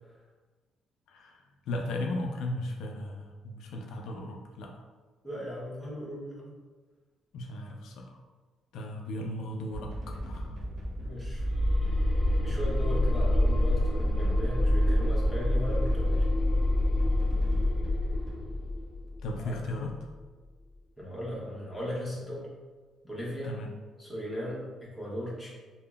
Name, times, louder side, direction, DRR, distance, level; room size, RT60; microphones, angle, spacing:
voice 1, 1.1-4.8 7.3-8.2 8.7-10.5 19.2-20.0 23.4-23.7, left 1 dB, 80° left, 1 dB, 0.3 m, -36 dB
voice 2, 5.2-6.5 10.9-11.4 12.4-16.3 19.4-19.6 21.0-22.5 23.0-23.5 24.0-25.5, equal, 5° left, -7 dB, 0.9 m, -37 dB
sound 1, 9.7-18.4, equal, 45° right, 0.6 m, -38 dB
sound 2, 11.3-20.2, left 1 dB, 35° left, 0.7 m, -27 dB
3.5 x 2.0 x 2.3 m, 1.3 s
cardioid pair, 115°, 0 cm